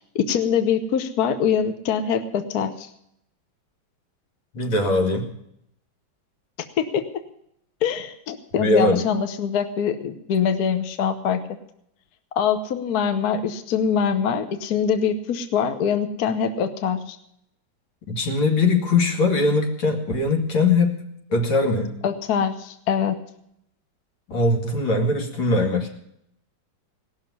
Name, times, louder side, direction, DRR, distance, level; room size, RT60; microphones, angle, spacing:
voice 1, 0.1-2.9 6.8-7.0 7.8-11.4 12.4-17.2 22.0-23.2, left 7 dB, 60° left, 9 dB, 1.3 m, -23 dB
voice 2, 4.5-5.3 8.6-9.0 18.1-21.0 21.3-21.9 24.3-25.9, left 3 dB, 85° left, 1 dB, 3.0 m, -21 dB
18.5 x 6.6 x 9.5 m, 0.75 s
omnidirectional pair, 2.1 m